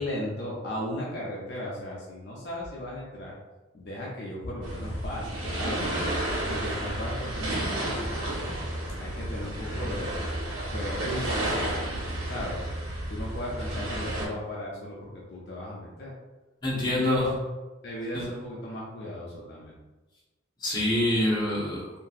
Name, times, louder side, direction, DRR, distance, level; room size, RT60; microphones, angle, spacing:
voice 1, 0.0-3.4 3.7-5.9 6.2-8.5 9.0-10.2 10.7-11.5 12.2-12.7 13.1-16.1 16.8-17.4 17.8-19.7, left 1 dB, 55° left, -4 dB, 0.6 m, -36 dB
sound 1, 4.6-14.3, right 1 dB, 85° right, 1.1 m, -31 dB
voice 2, 16.6-17.2 18.1-18.3 20.6-21.8, left 1 dB, 20° left, -6 dB, 0.9 m, -26 dB
2.8 x 2.5 x 2.4 m, 1.1 s
head